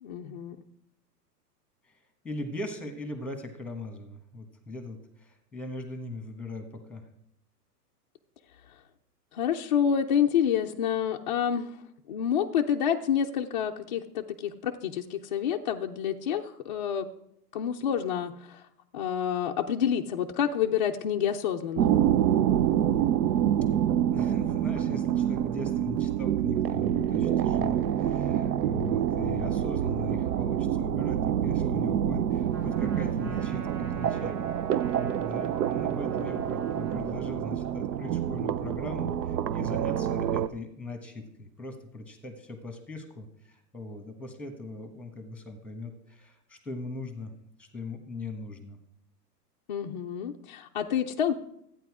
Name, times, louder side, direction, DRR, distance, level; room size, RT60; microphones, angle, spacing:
voice 1, 0.0-0.6 9.3-11.7 12.1-17.1 17.5-18.6 18.9-21.9 49.7-51.3, left 8 dB, 30° left, 0 dB, 0.4 m, -28 dB
voice 2, 2.2-7.0 24.1-47.3 47.6-48.8, left 2 dB, ahead, 7 dB, 1.1 m, -40 dB
sound 1, 21.8-40.5, right 10 dB, 80° right, 0.8 m, -27 dB
Trumpet, 32.5-37.2, right 5 dB, 50° right, 1.9 m, -46 dB
13.0 x 9.1 x 4.8 m, 0.75 s
hypercardioid pair, 145°, 49 cm